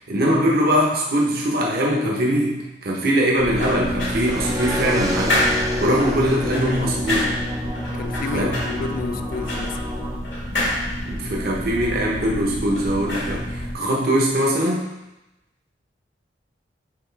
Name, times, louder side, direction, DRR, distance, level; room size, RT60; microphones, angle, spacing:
voice 1, 0.1-5.4 5.8-7.3 8.3-8.5 11.1-14.9, equal, 55° right, -2 dB, 1.1 m, -21 dB
sound 1, 3.4-13.7, left 1 dB, 85° left, 2.2 m, -27 dB
sound 2, 4.2-10.2, left 1 dB, 20° right, 0.7 m, -31 dB
voice 2, 7.9-9.9, left 4 dB, 50° left, 9 dB, 0.4 m, -30 dB
7.0 x 4.8 x 3.4 m, 0.99 s
head